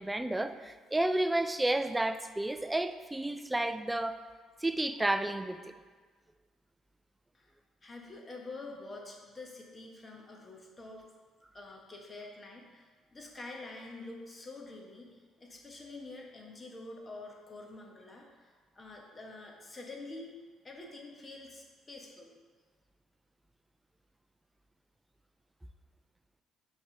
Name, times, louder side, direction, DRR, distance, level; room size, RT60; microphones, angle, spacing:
voice 1, 0.0-4.2 4.6-5.7, right 1 dB, 10° right, 9 dB, 0.3 m, -31 dB
voice 2, 7.8-11.0 11.5-22.3, left 2 dB, 25° left, 0 dB, 1.1 m, -47 dB
5.5 x 3.4 x 5.7 m, 1.4 s
cardioid pair, 90°, 0 cm